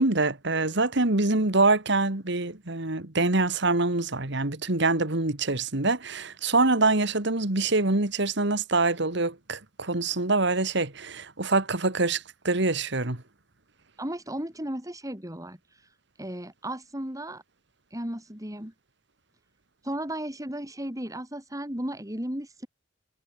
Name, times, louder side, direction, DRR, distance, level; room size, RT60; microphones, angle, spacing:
voice 1, 0.0-13.2, right 3 dB, 65° right, 2.4 m, -25 dB
voice 2, 14.0-17.4 17.9-18.7 19.8-22.7, right 1 dB, 20° right, 6.2 m, -35 dB
head